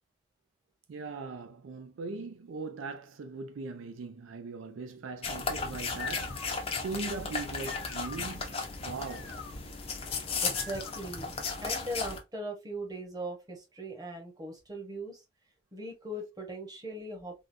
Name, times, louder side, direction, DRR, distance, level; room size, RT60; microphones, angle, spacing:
voice 1, 0.9-9.4, right 4 dB, 70° right, 0.4 m, -40 dB
sound 1, 5.2-12.2, left 4 dB, 30° left, 0.6 m, -35 dB
sound 2, 5.9-11.3, left 5 dB, 80° left, 0.6 m, -46 dB
voice 2, 10.4-11.3 11.6-15.2 15.7-17.5, right 1 dB, 20° right, 0.9 m, -39 dB
3.7 x 2.2 x 2.5 m
head